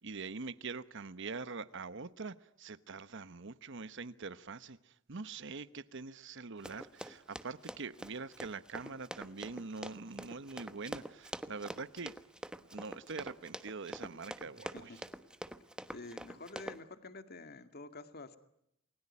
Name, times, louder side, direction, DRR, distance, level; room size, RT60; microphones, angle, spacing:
voice 1, 0.0-12.1 12.7-14.9, right 4 dB, 60° right, 1.0 m, -44 dB
Run, 6.6-16.8, right 1 dB, 5° right, 1.1 m, -45 dB
voice 2, 14.6-15.0 15.9-18.4, left 2 dB, 50° left, 2.0 m, -48 dB
29.0 x 21.0 x 9.7 m
head